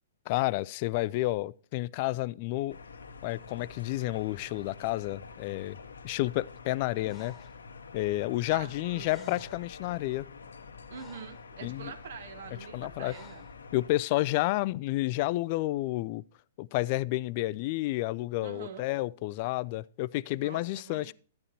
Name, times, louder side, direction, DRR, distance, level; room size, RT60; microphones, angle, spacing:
voice 1, 0.3-2.8 3.2-5.8 6.0-7.4 7.9-10.3 11.6-11.9 12.7-13.1 13.7-16.2 16.6-21.1, left 18 dB, 40° left, 0.3 m, -30 dB
sound 1, 2.7-13.9, left 4 dB, 70° left, 0.8 m, -47 dB
Breathing, 7.1-7.6 8.8-8.9 9.0-9.7 10.4-11.5 13.1-13.6, left 4 dB, 15° left, 1.3 m, -53 dB
voice 2, 8.5-9.2 10.9-13.5 18.4-18.9 20.4-21.1, right 6 dB, 55° right, 1.0 m, -45 dB
12.5 x 9.6 x 2.9 m
figure-of-eight pair, 110°, 0 cm